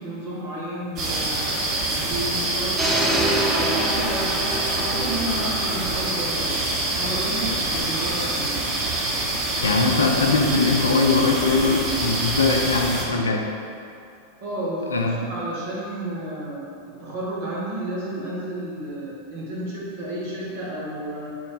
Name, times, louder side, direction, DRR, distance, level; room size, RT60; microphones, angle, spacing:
voice 1, 0.0-1.5 2.0-6.6 6.9-8.6 14.4-16.6 17.0-21.3, right 1 dB, 50° right, -6 dB, 1.1 m, -31 dB
sound 1, 1.0-13.0, right 2 dB, 35° right, 0.7 m, -26 dB
sound 2, 2.8-6.8, right 1 dB, 5° right, 0.4 m, -26 dB
voice 2, 9.6-13.4 14.9-15.2, left 3 dB, 70° left, 2 dB, 0.4 m, -21 dB
4.5 x 2.1 x 3.9 m, 2.5 s
figure-of-eight pair, 90°, 0 cm